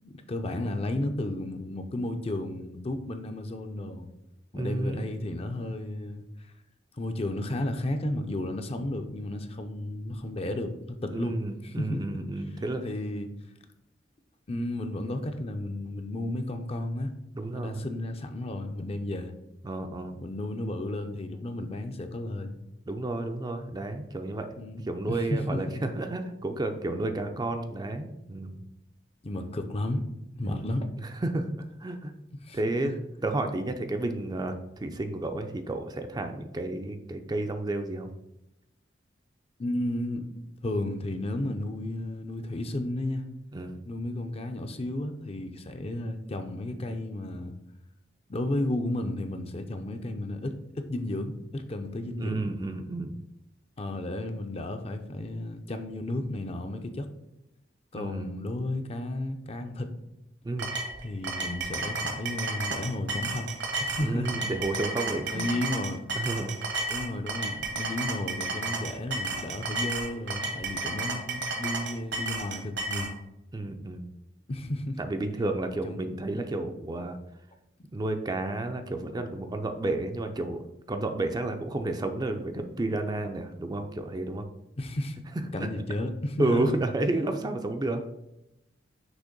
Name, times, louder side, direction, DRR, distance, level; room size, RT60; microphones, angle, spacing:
voice 1, 0.0-4.1 4.5-6.2 7.0-12.0 12.8-13.3 14.5-17.1 17.5-19.3 20.2-22.6 24.6-25.9 29.2-30.0 30.4-30.9 32.4-32.9 39.6-40.3 40.6-43.2 43.9-47.5 48.3-52.5 53.8-57.1 57.9-59.9 61.0-63.5 63.8-64.3 65.3-66.0 66.9-73.1 74.5-75.0 75.8-76.0 84.8-85.2 85.5-86.6, left 1 dB, 35° left, 7 dB, 0.5 m, -33 dB
voice 2, 4.5-5.1 11.1-12.8 17.3-17.8 19.6-20.2 22.9-24.6 24.9-28.6 30.4-30.7 31.0-31.5 31.8-32.1 32.5-32.9 33.2-38.1 43.5-43.8 52.2-53.2 57.9-58.4 60.4-60.7 64.0-65.5 66.1-66.6 73.5-74.1 75.0-77.2 77.9-84.5 85.6-85.7 86.4-88.0, right 2 dB, 20° right, 6 dB, 0.4 m, -31 dB
sound 1, 60.6-73.1, right 2 dB, 70° right, 1.1 m, -32 dB
6.2 x 3.0 x 5.2 m, 0.86 s
head